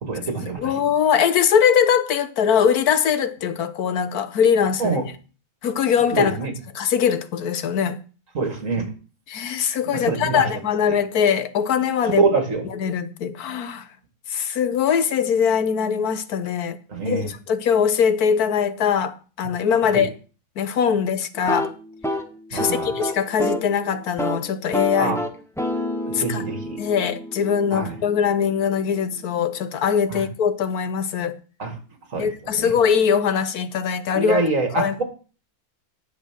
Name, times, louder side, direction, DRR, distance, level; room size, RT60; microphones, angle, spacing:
voice 1, 0.0-0.8 4.8-5.0 6.1-6.5 8.3-8.9 9.9-10.4 10.9-11.0 12.2-12.6 16.9-17.3 19.9-20.1 22.5-22.9 24.9-25.2 26.2-26.8 27.7-28.0 30.1-30.3 31.6-31.7 32.1-32.3 32.6-32.7 34.1-35.0, right 3 dB, 60° right, 2.5 m, -24 dB
voice 2, 0.6-5.0 5.6-6.4 6.7-8.0 9.3-12.3 12.7-13.8 14.3-16.8 17.0-20.1 20.6-21.7 22.5-25.2 26.1-26.4 26.8-31.3 32.2-34.4 34.7-35.0, left 7 dB, 80° left, 1.4 m, -21 dB
sound 1, 21.3-23.7 24.0-24.4 24.7-28.6, equal, ahead, 1.2 m, -29 dB
10.5 x 6.8 x 6.2 m
omnidirectional pair, 1.6 m